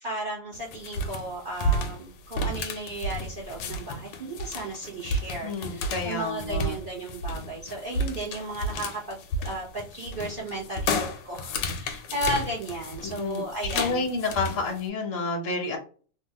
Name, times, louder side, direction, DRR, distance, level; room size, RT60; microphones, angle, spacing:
voice 1, 0.0-14.1, right 1 dB, 70° right, -4 dB, 0.5 m, -34 dB
sound 1, 0.5-14.8, left 1 dB, 75° left, 1.2 m, -32 dB
voice 2, 5.4-6.7 13.0-13.4 13.7-15.8, left 3 dB, 50° left, 1 dB, 1.1 m, -29 dB
3.3 x 2.1 x 2.8 m, 0.40 s
omnidirectional pair, 2.0 m